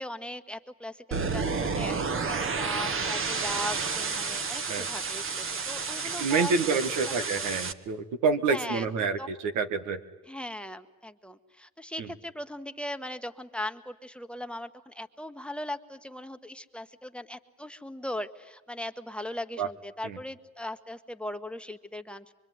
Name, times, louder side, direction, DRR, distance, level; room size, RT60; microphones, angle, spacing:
voice 1, 0.0-7.1 8.5-9.3 10.3-22.3, left 1 dB, 5° left, 7 dB, 1.3 m, -39 dB
sound 1, 1.1-7.7, right 4 dB, 45° right, 1.5 m, -31 dB
voice 2, 6.2-10.0 12.0-12.1 19.6-19.7 20.0-20.2, right 4 dB, 90° right, 7 dB, 1.9 m, -28 dB
24.5 x 24.5 x 9.5 m, 1.1 s
cardioid pair, 90°, 30 cm